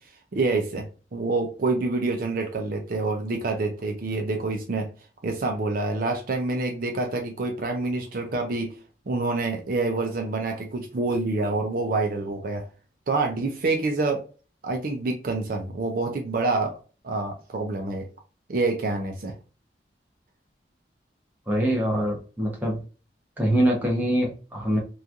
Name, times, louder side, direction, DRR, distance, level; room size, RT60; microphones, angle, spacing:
voice 1, 0.3-0.8 1.1-4.9 5.2-8.8 9.1-12.6 13.1-14.2 14.6-16.7 17.0-18.1 18.5-19.3, right 3 dB, 50° right, 3 dB, 0.5 m, -27 dB
voice 2, 21.5-22.8 23.4-24.8, right 1 dB, 10° right, -2 dB, 0.9 m, -24 dB
3.0 x 2.3 x 2.4 m, 0.36 s
head